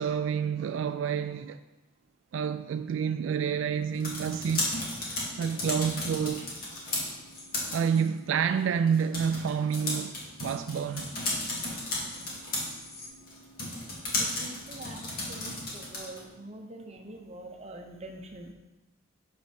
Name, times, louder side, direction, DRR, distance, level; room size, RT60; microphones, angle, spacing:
voice 1, 0.0-1.6 2.3-4.7 5.0-6.4 7.7-11.1, right 7 dB, 80° right, 0.3 m, -29 dB
sound 1, 3.8-16.3, left 2 dB, 50° left, 2.0 m, -35 dB
sound 2, 7.3-8.2 9.6-13.1, left 2 dB, 30° left, 1.6 m, -51 dB
voice 2, 14.1-18.5, right 1 dB, 30° right, 0.8 m, -45 dB
7.8 x 4.4 x 5.3 m
head